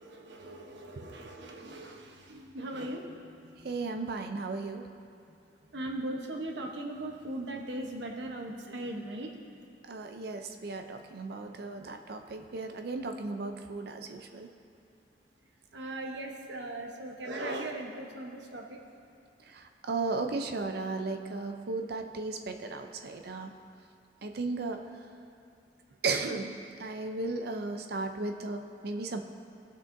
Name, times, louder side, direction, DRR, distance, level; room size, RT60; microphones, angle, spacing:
voice 1, 0.0-3.2 3.6-3.7 5.7-9.3 15.7-18.8, right 1 dB, 85° right, 1 dB, 1.0 m, -39 dB
voice 2, 1.0-1.3 3.6-4.9 9.9-14.5 19.4-23.6 24.2-24.8 26.0-29.2, right 3 dB, 60° right, 5 dB, 0.5 m, -35 dB
18.0 x 6.1 x 2.6 m, 2.7 s
head